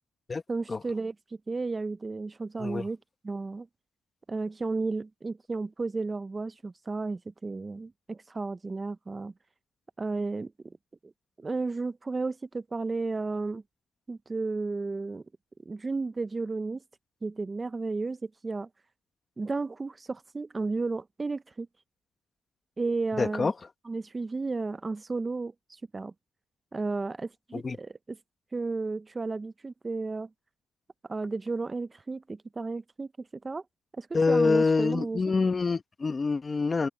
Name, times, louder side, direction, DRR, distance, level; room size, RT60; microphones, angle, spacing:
voice 1, 0.5-3.0 3.2-3.7 4.3-9.3 10.0-10.5 11.0-11.1 11.4-13.6 14.1-15.2 15.7-16.8 17.2-18.7 19.4-21.7 22.8-23.5 23.9-26.1 26.7-28.2 28.5-30.3 31.1-33.6 33.9-35.2, right 3 dB, 25° right, 0.5 m, -33 dB
voice 2, 23.2-23.5 27.5-27.8 34.1-36.9, left 4 dB, 30° left, 1.2 m, -26 dB
open air
cardioid pair, 90°, 0 cm